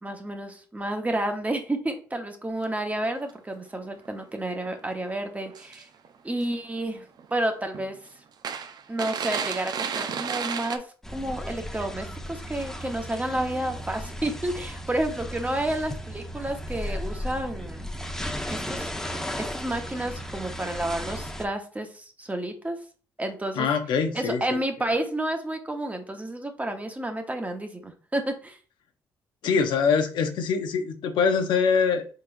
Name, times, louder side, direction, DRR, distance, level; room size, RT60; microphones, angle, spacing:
voice 1, 0.0-5.9 6.2-8.0 8.9-10.9 11.1-17.9 18.5-22.8 23.2-23.7 24.1-28.6, right 1 dB, 20° right, 5 dB, 1.1 m, -30 dB
sound 1, 2.6-2.7 3.0-3.3 4.1-4.2 4.7-4.8 5.5-6.1 6.4-6.9 7.2-7.3 7.7-7.9 8.4-10.8, right 6 dB, 55° right, 0.6 m, -32 dB
sound 2, 11.0-21.5, equal, 5° left, 0.7 m, -35 dB
voice 2, 23.6-24.4 29.4-32.1, left 6 dB, 75° left, 6 dB, 0.6 m, -23 dB
4.3 x 3.9 x 2.6 m, 0.39 s
supercardioid pair, 55°, 8 cm